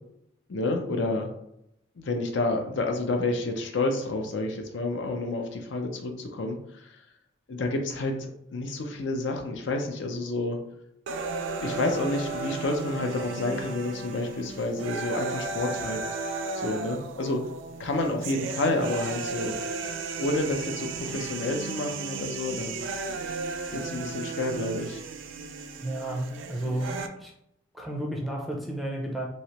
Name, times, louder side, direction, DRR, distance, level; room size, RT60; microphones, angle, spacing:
voice 1, 0.5-1.3 2.0-6.9 7.5-10.6 11.6-16.0 16.5-17.4 17.8-19.6 20.2-22.8 23.7-25.0, left 2 dB, 70° left, 3 dB, 0.5 m, -29 dB
sound 1, 11.1-27.1, right 4 dB, 75° right, 0.4 m, -35 dB
voice 2, 25.8-27.3 27.7-29.3, right 1 dB, ahead, -1 dB, 0.5 m, -32 dB
3.1 x 2.8 x 2.9 m, 0.77 s
head